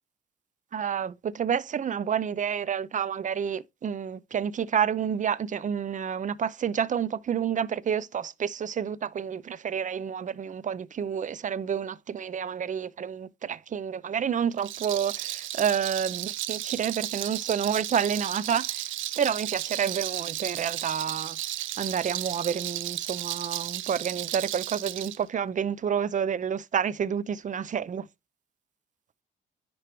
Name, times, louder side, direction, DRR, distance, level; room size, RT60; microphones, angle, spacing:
voice 1, 0.7-18.9 19.2-21.4 21.8-28.1, right 8 dB, 40° right, 0.6 m, -29 dB
Rattle, 14.5-25.2, right 14 dB, 80° right, 0.7 m, -34 dB
10.0 x 4.6 x 3.1 m
cardioid pair, 90°, 20 cm